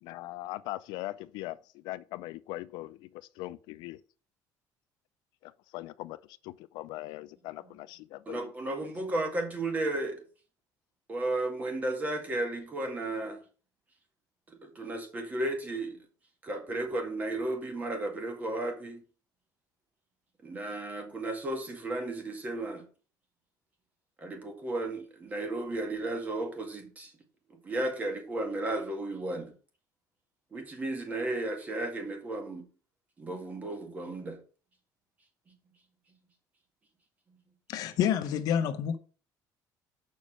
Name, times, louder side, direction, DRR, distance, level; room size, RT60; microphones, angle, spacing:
voice 1, 0.0-4.0 5.4-8.5 8.8-8.9, left 17 dB, 80° left, 0.4 m, -41 dB
voice 2, 8.3-10.2 11.1-13.4 14.5-16.0 16.4-19.0 20.4-22.8 24.2-27.1 27.5-29.5 30.5-32.6 33.2-34.4 37.3-37.4, right 2 dB, 20° right, 1.9 m, -34 dB
voice 3, 37.7-39.0, left 9 dB, 60° left, 0.9 m, -28 dB
7.1 x 5.4 x 6.2 m
cardioid pair, 170°, 7 cm